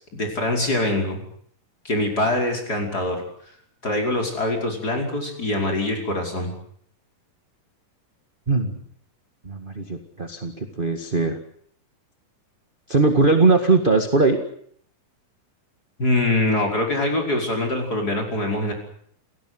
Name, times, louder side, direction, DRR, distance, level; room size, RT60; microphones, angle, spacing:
voice 1, 0.1-1.3 1.8-3.2 3.8-6.5 16.0-18.7, left 1 dB, 25° left, 2 dB, 5.6 m, -23 dB
voice 2, 9.4-11.4 12.9-14.4, right 3 dB, 25° right, 5 dB, 1.2 m, -20 dB
29.0 x 17.5 x 8.0 m, 0.64 s
omnidirectional pair, 4.0 m